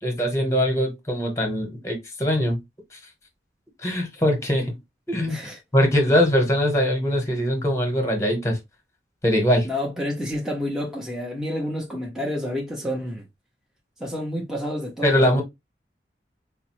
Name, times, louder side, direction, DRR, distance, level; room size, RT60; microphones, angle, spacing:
voice 1, 0.0-2.6 2.9-3.0 3.8-4.8 5.1-8.6 9.2-9.7 15.0-15.4, equal, 15° left, 1.0 m, -22 dB
voice 2, 5.3-5.6 9.6-13.2 14.0-15.4, left 1 dB, ahead, 0.6 m, -29 dB
4.8 x 2.0 x 3.0 m
head